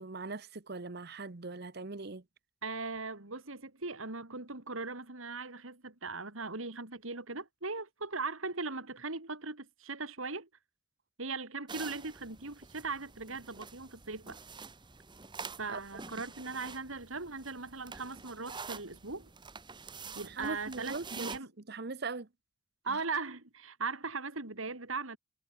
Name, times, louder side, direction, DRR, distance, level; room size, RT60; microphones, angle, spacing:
voice 1, 0.0-2.2 15.7-15.8 20.3-21.3 21.7-22.3, right 3 dB, 50° right, 1.0 m, -40 dB
voice 2, 2.6-10.5 11.2-14.4 15.6-19.3 20.1-21.5 22.8-25.2, right 3 dB, 80° right, 3.3 m, -39 dB
sound 1, 11.7-21.4, right 5 dB, 20° right, 1.5 m, -47 dB
head